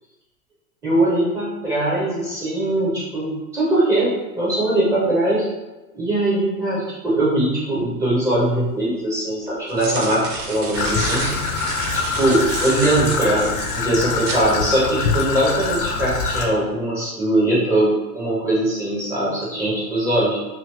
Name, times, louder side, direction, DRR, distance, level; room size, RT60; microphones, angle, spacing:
voice 1, 0.8-5.5 5.9-11.3 11.9-20.4, right 1 dB, 10° right, -8 dB, 0.4 m, -21 dB
sound 1, 8.4-8.5 9.5-14.5, right 3 dB, 65° right, 0.8 m, -30 dB
Traffic noise roadway noise / Trickle dribble, 10.7-16.5, left 5 dB, 65° left, 0.6 m, -24 dB
3.1 x 2.8 x 2.8 m, 1.1 s
hypercardioid pair, 105°, 47 cm